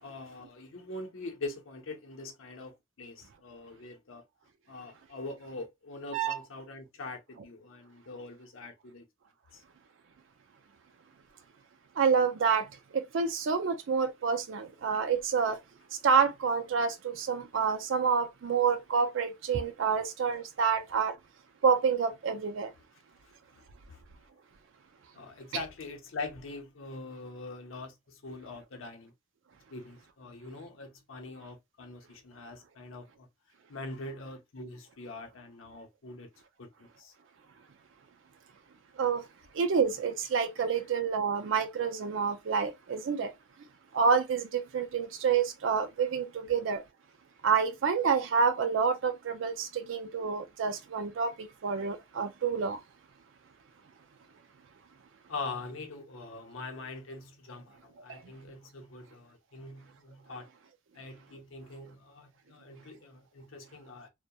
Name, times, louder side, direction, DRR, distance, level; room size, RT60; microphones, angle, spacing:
voice 1, 0.0-4.2 4.7-9.1 9.5-9.6 23.3-24.0 25.1-29.1 29.7-33.3 33.7-36.3 36.6-36.7 37.0-37.1 55.3-60.5 60.9-64.1, left 3 dB, 85° left, 0.7 m, -43 dB
voice 2, 12.0-12.7 12.9-15.6 16.0-21.1 21.6-22.7 39.0-39.2 39.5-43.3 43.9-46.8 47.4-52.8 58.1-58.2, right 6 dB, 70° right, 0.4 m, -28 dB
2.7 x 2.2 x 2.2 m
head